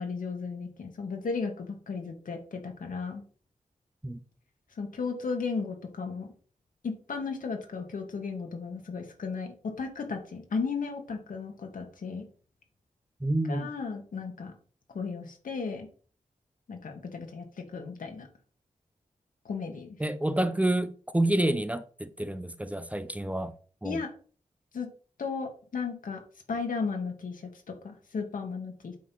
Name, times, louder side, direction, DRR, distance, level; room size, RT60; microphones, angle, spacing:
voice 1, 0.0-3.2 4.8-6.3 6.8-12.3 13.5-14.5 14.9-15.9 16.7-18.3 19.5-20.0 23.8-24.1 24.7-24.9 25.2-26.2 26.5-29.0, left 4 dB, 80° left, 1.9 m, -35 dB
voice 2, 13.2-13.7 20.0-23.5 23.8-24.0, right 1 dB, 10° right, 0.6 m, -28 dB
8.4 x 3.8 x 6.1 m
wide cardioid pair, 105°, 14 cm